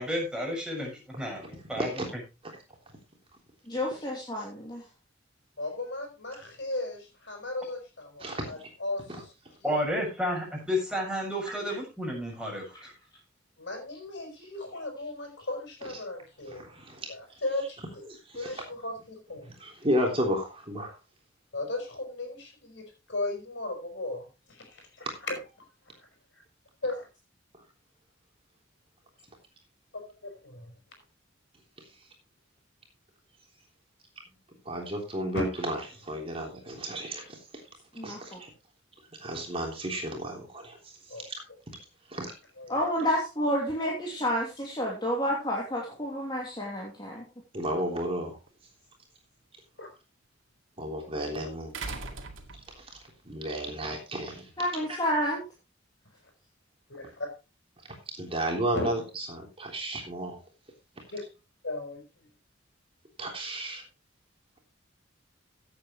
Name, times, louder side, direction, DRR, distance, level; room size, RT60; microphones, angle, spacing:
voice 1, 0.0-1.4 1.7-1.9 9.6-12.9, equal, 5° right, -2 dB, 6.7 m, -31 dB
voice 2, 3.7-4.8 14.4-14.5 38.0-38.4 42.7-47.2 54.6-55.4, equal, 25° left, -3 dB, 2.8 m, -30 dB
voice 3, 5.6-7.0 7.3-9.0 13.6-16.6 17.1-17.8 18.4-19.5 21.5-24.2 25.0-25.4 26.8-27.1 30.2-30.6 35.3-35.5 41.1-41.2 42.6-42.7 43.7-43.8 49.8-49.9 56.9-57.3 58.7-58.9 61.1-61.2 61.6-62.0, left 2 dB, 65° left, 4 dB, 5.4 m, -35 dB
voice 4, 8.2-8.5 9.1-9.2 15.8-15.9 16.5-17.1 18.1-18.6 19.6-21.0 34.7-37.4 38.0-38.5 39.2-41.2 42.1-42.3 47.5-48.4 50.8-52.1 52.8-52.9 53.3-54.5 58.2-60.4 63.2-63.8, right 1 dB, 30° right, 0 dB, 3.5 m, -33 dB
sound 1, 48.5-48.6 51.7-53.0 54.4-54.5, right 3 dB, 90° right, 2.2 m, -39 dB
16.5 x 8.5 x 3.2 m, 0.29 s
head